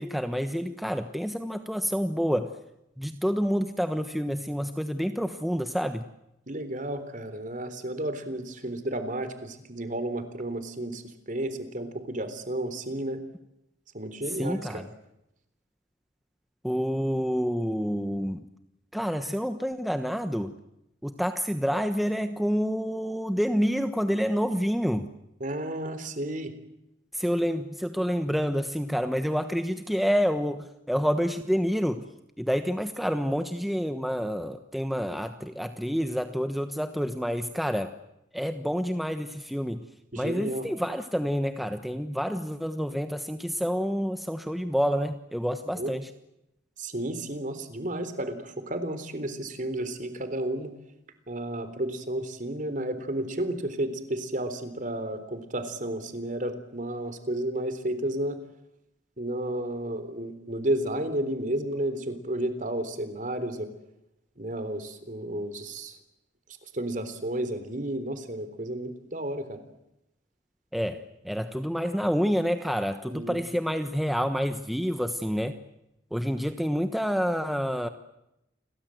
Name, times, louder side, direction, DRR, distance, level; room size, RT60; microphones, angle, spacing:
voice 1, 0.0-2.6 3.0-6.0 14.3-14.8 16.6-18.4 18.9-20.5 21.0-25.1 27.1-32.1 32.4-38.0 38.3-39.9 40.1-46.1 70.7-75.6 76.1-77.9, equal, ahead, 7 dB, 1.1 m, -28 dB
voice 2, 6.5-13.2 13.9-14.8 25.4-26.5 40.1-40.7 45.8-45.9 46.8-50.7 51.3-58.4 59.2-63.7 64.4-66.0 66.7-69.6 73.1-73.4, right 1 dB, 40° right, 11 dB, 3.8 m, -32 dB
29.5 x 23.0 x 7.9 m, 0.86 s
head